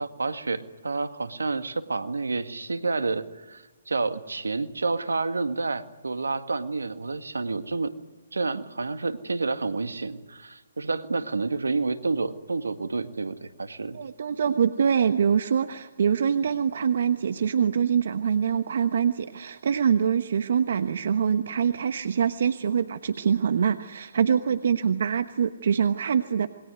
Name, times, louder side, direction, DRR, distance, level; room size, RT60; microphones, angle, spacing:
voice 1, 0.0-7.9 8.3-14.0, right 3 dB, 85° right, 9 dB, 2.0 m, -29 dB
voice 2, 13.9-26.5, right 7 dB, 60° right, 10 dB, 1.2 m, -24 dB
27.5 x 22.0 x 9.5 m, 1.2 s
figure-of-eight pair, 135°, 0 cm